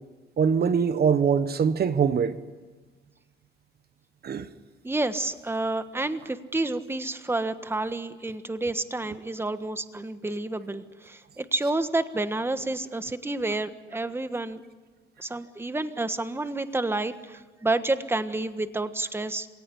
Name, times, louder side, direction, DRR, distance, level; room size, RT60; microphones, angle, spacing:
voice 1, 0.4-2.4 4.2-4.5, right 6 dB, 50° right, 1.3 m, -23 dB
voice 2, 4.8-14.6 15.2-19.5, right 2 dB, 10° right, 1.4 m, -29 dB
27.0 x 18.0 x 9.9 m
cardioid pair, 90°, 20 cm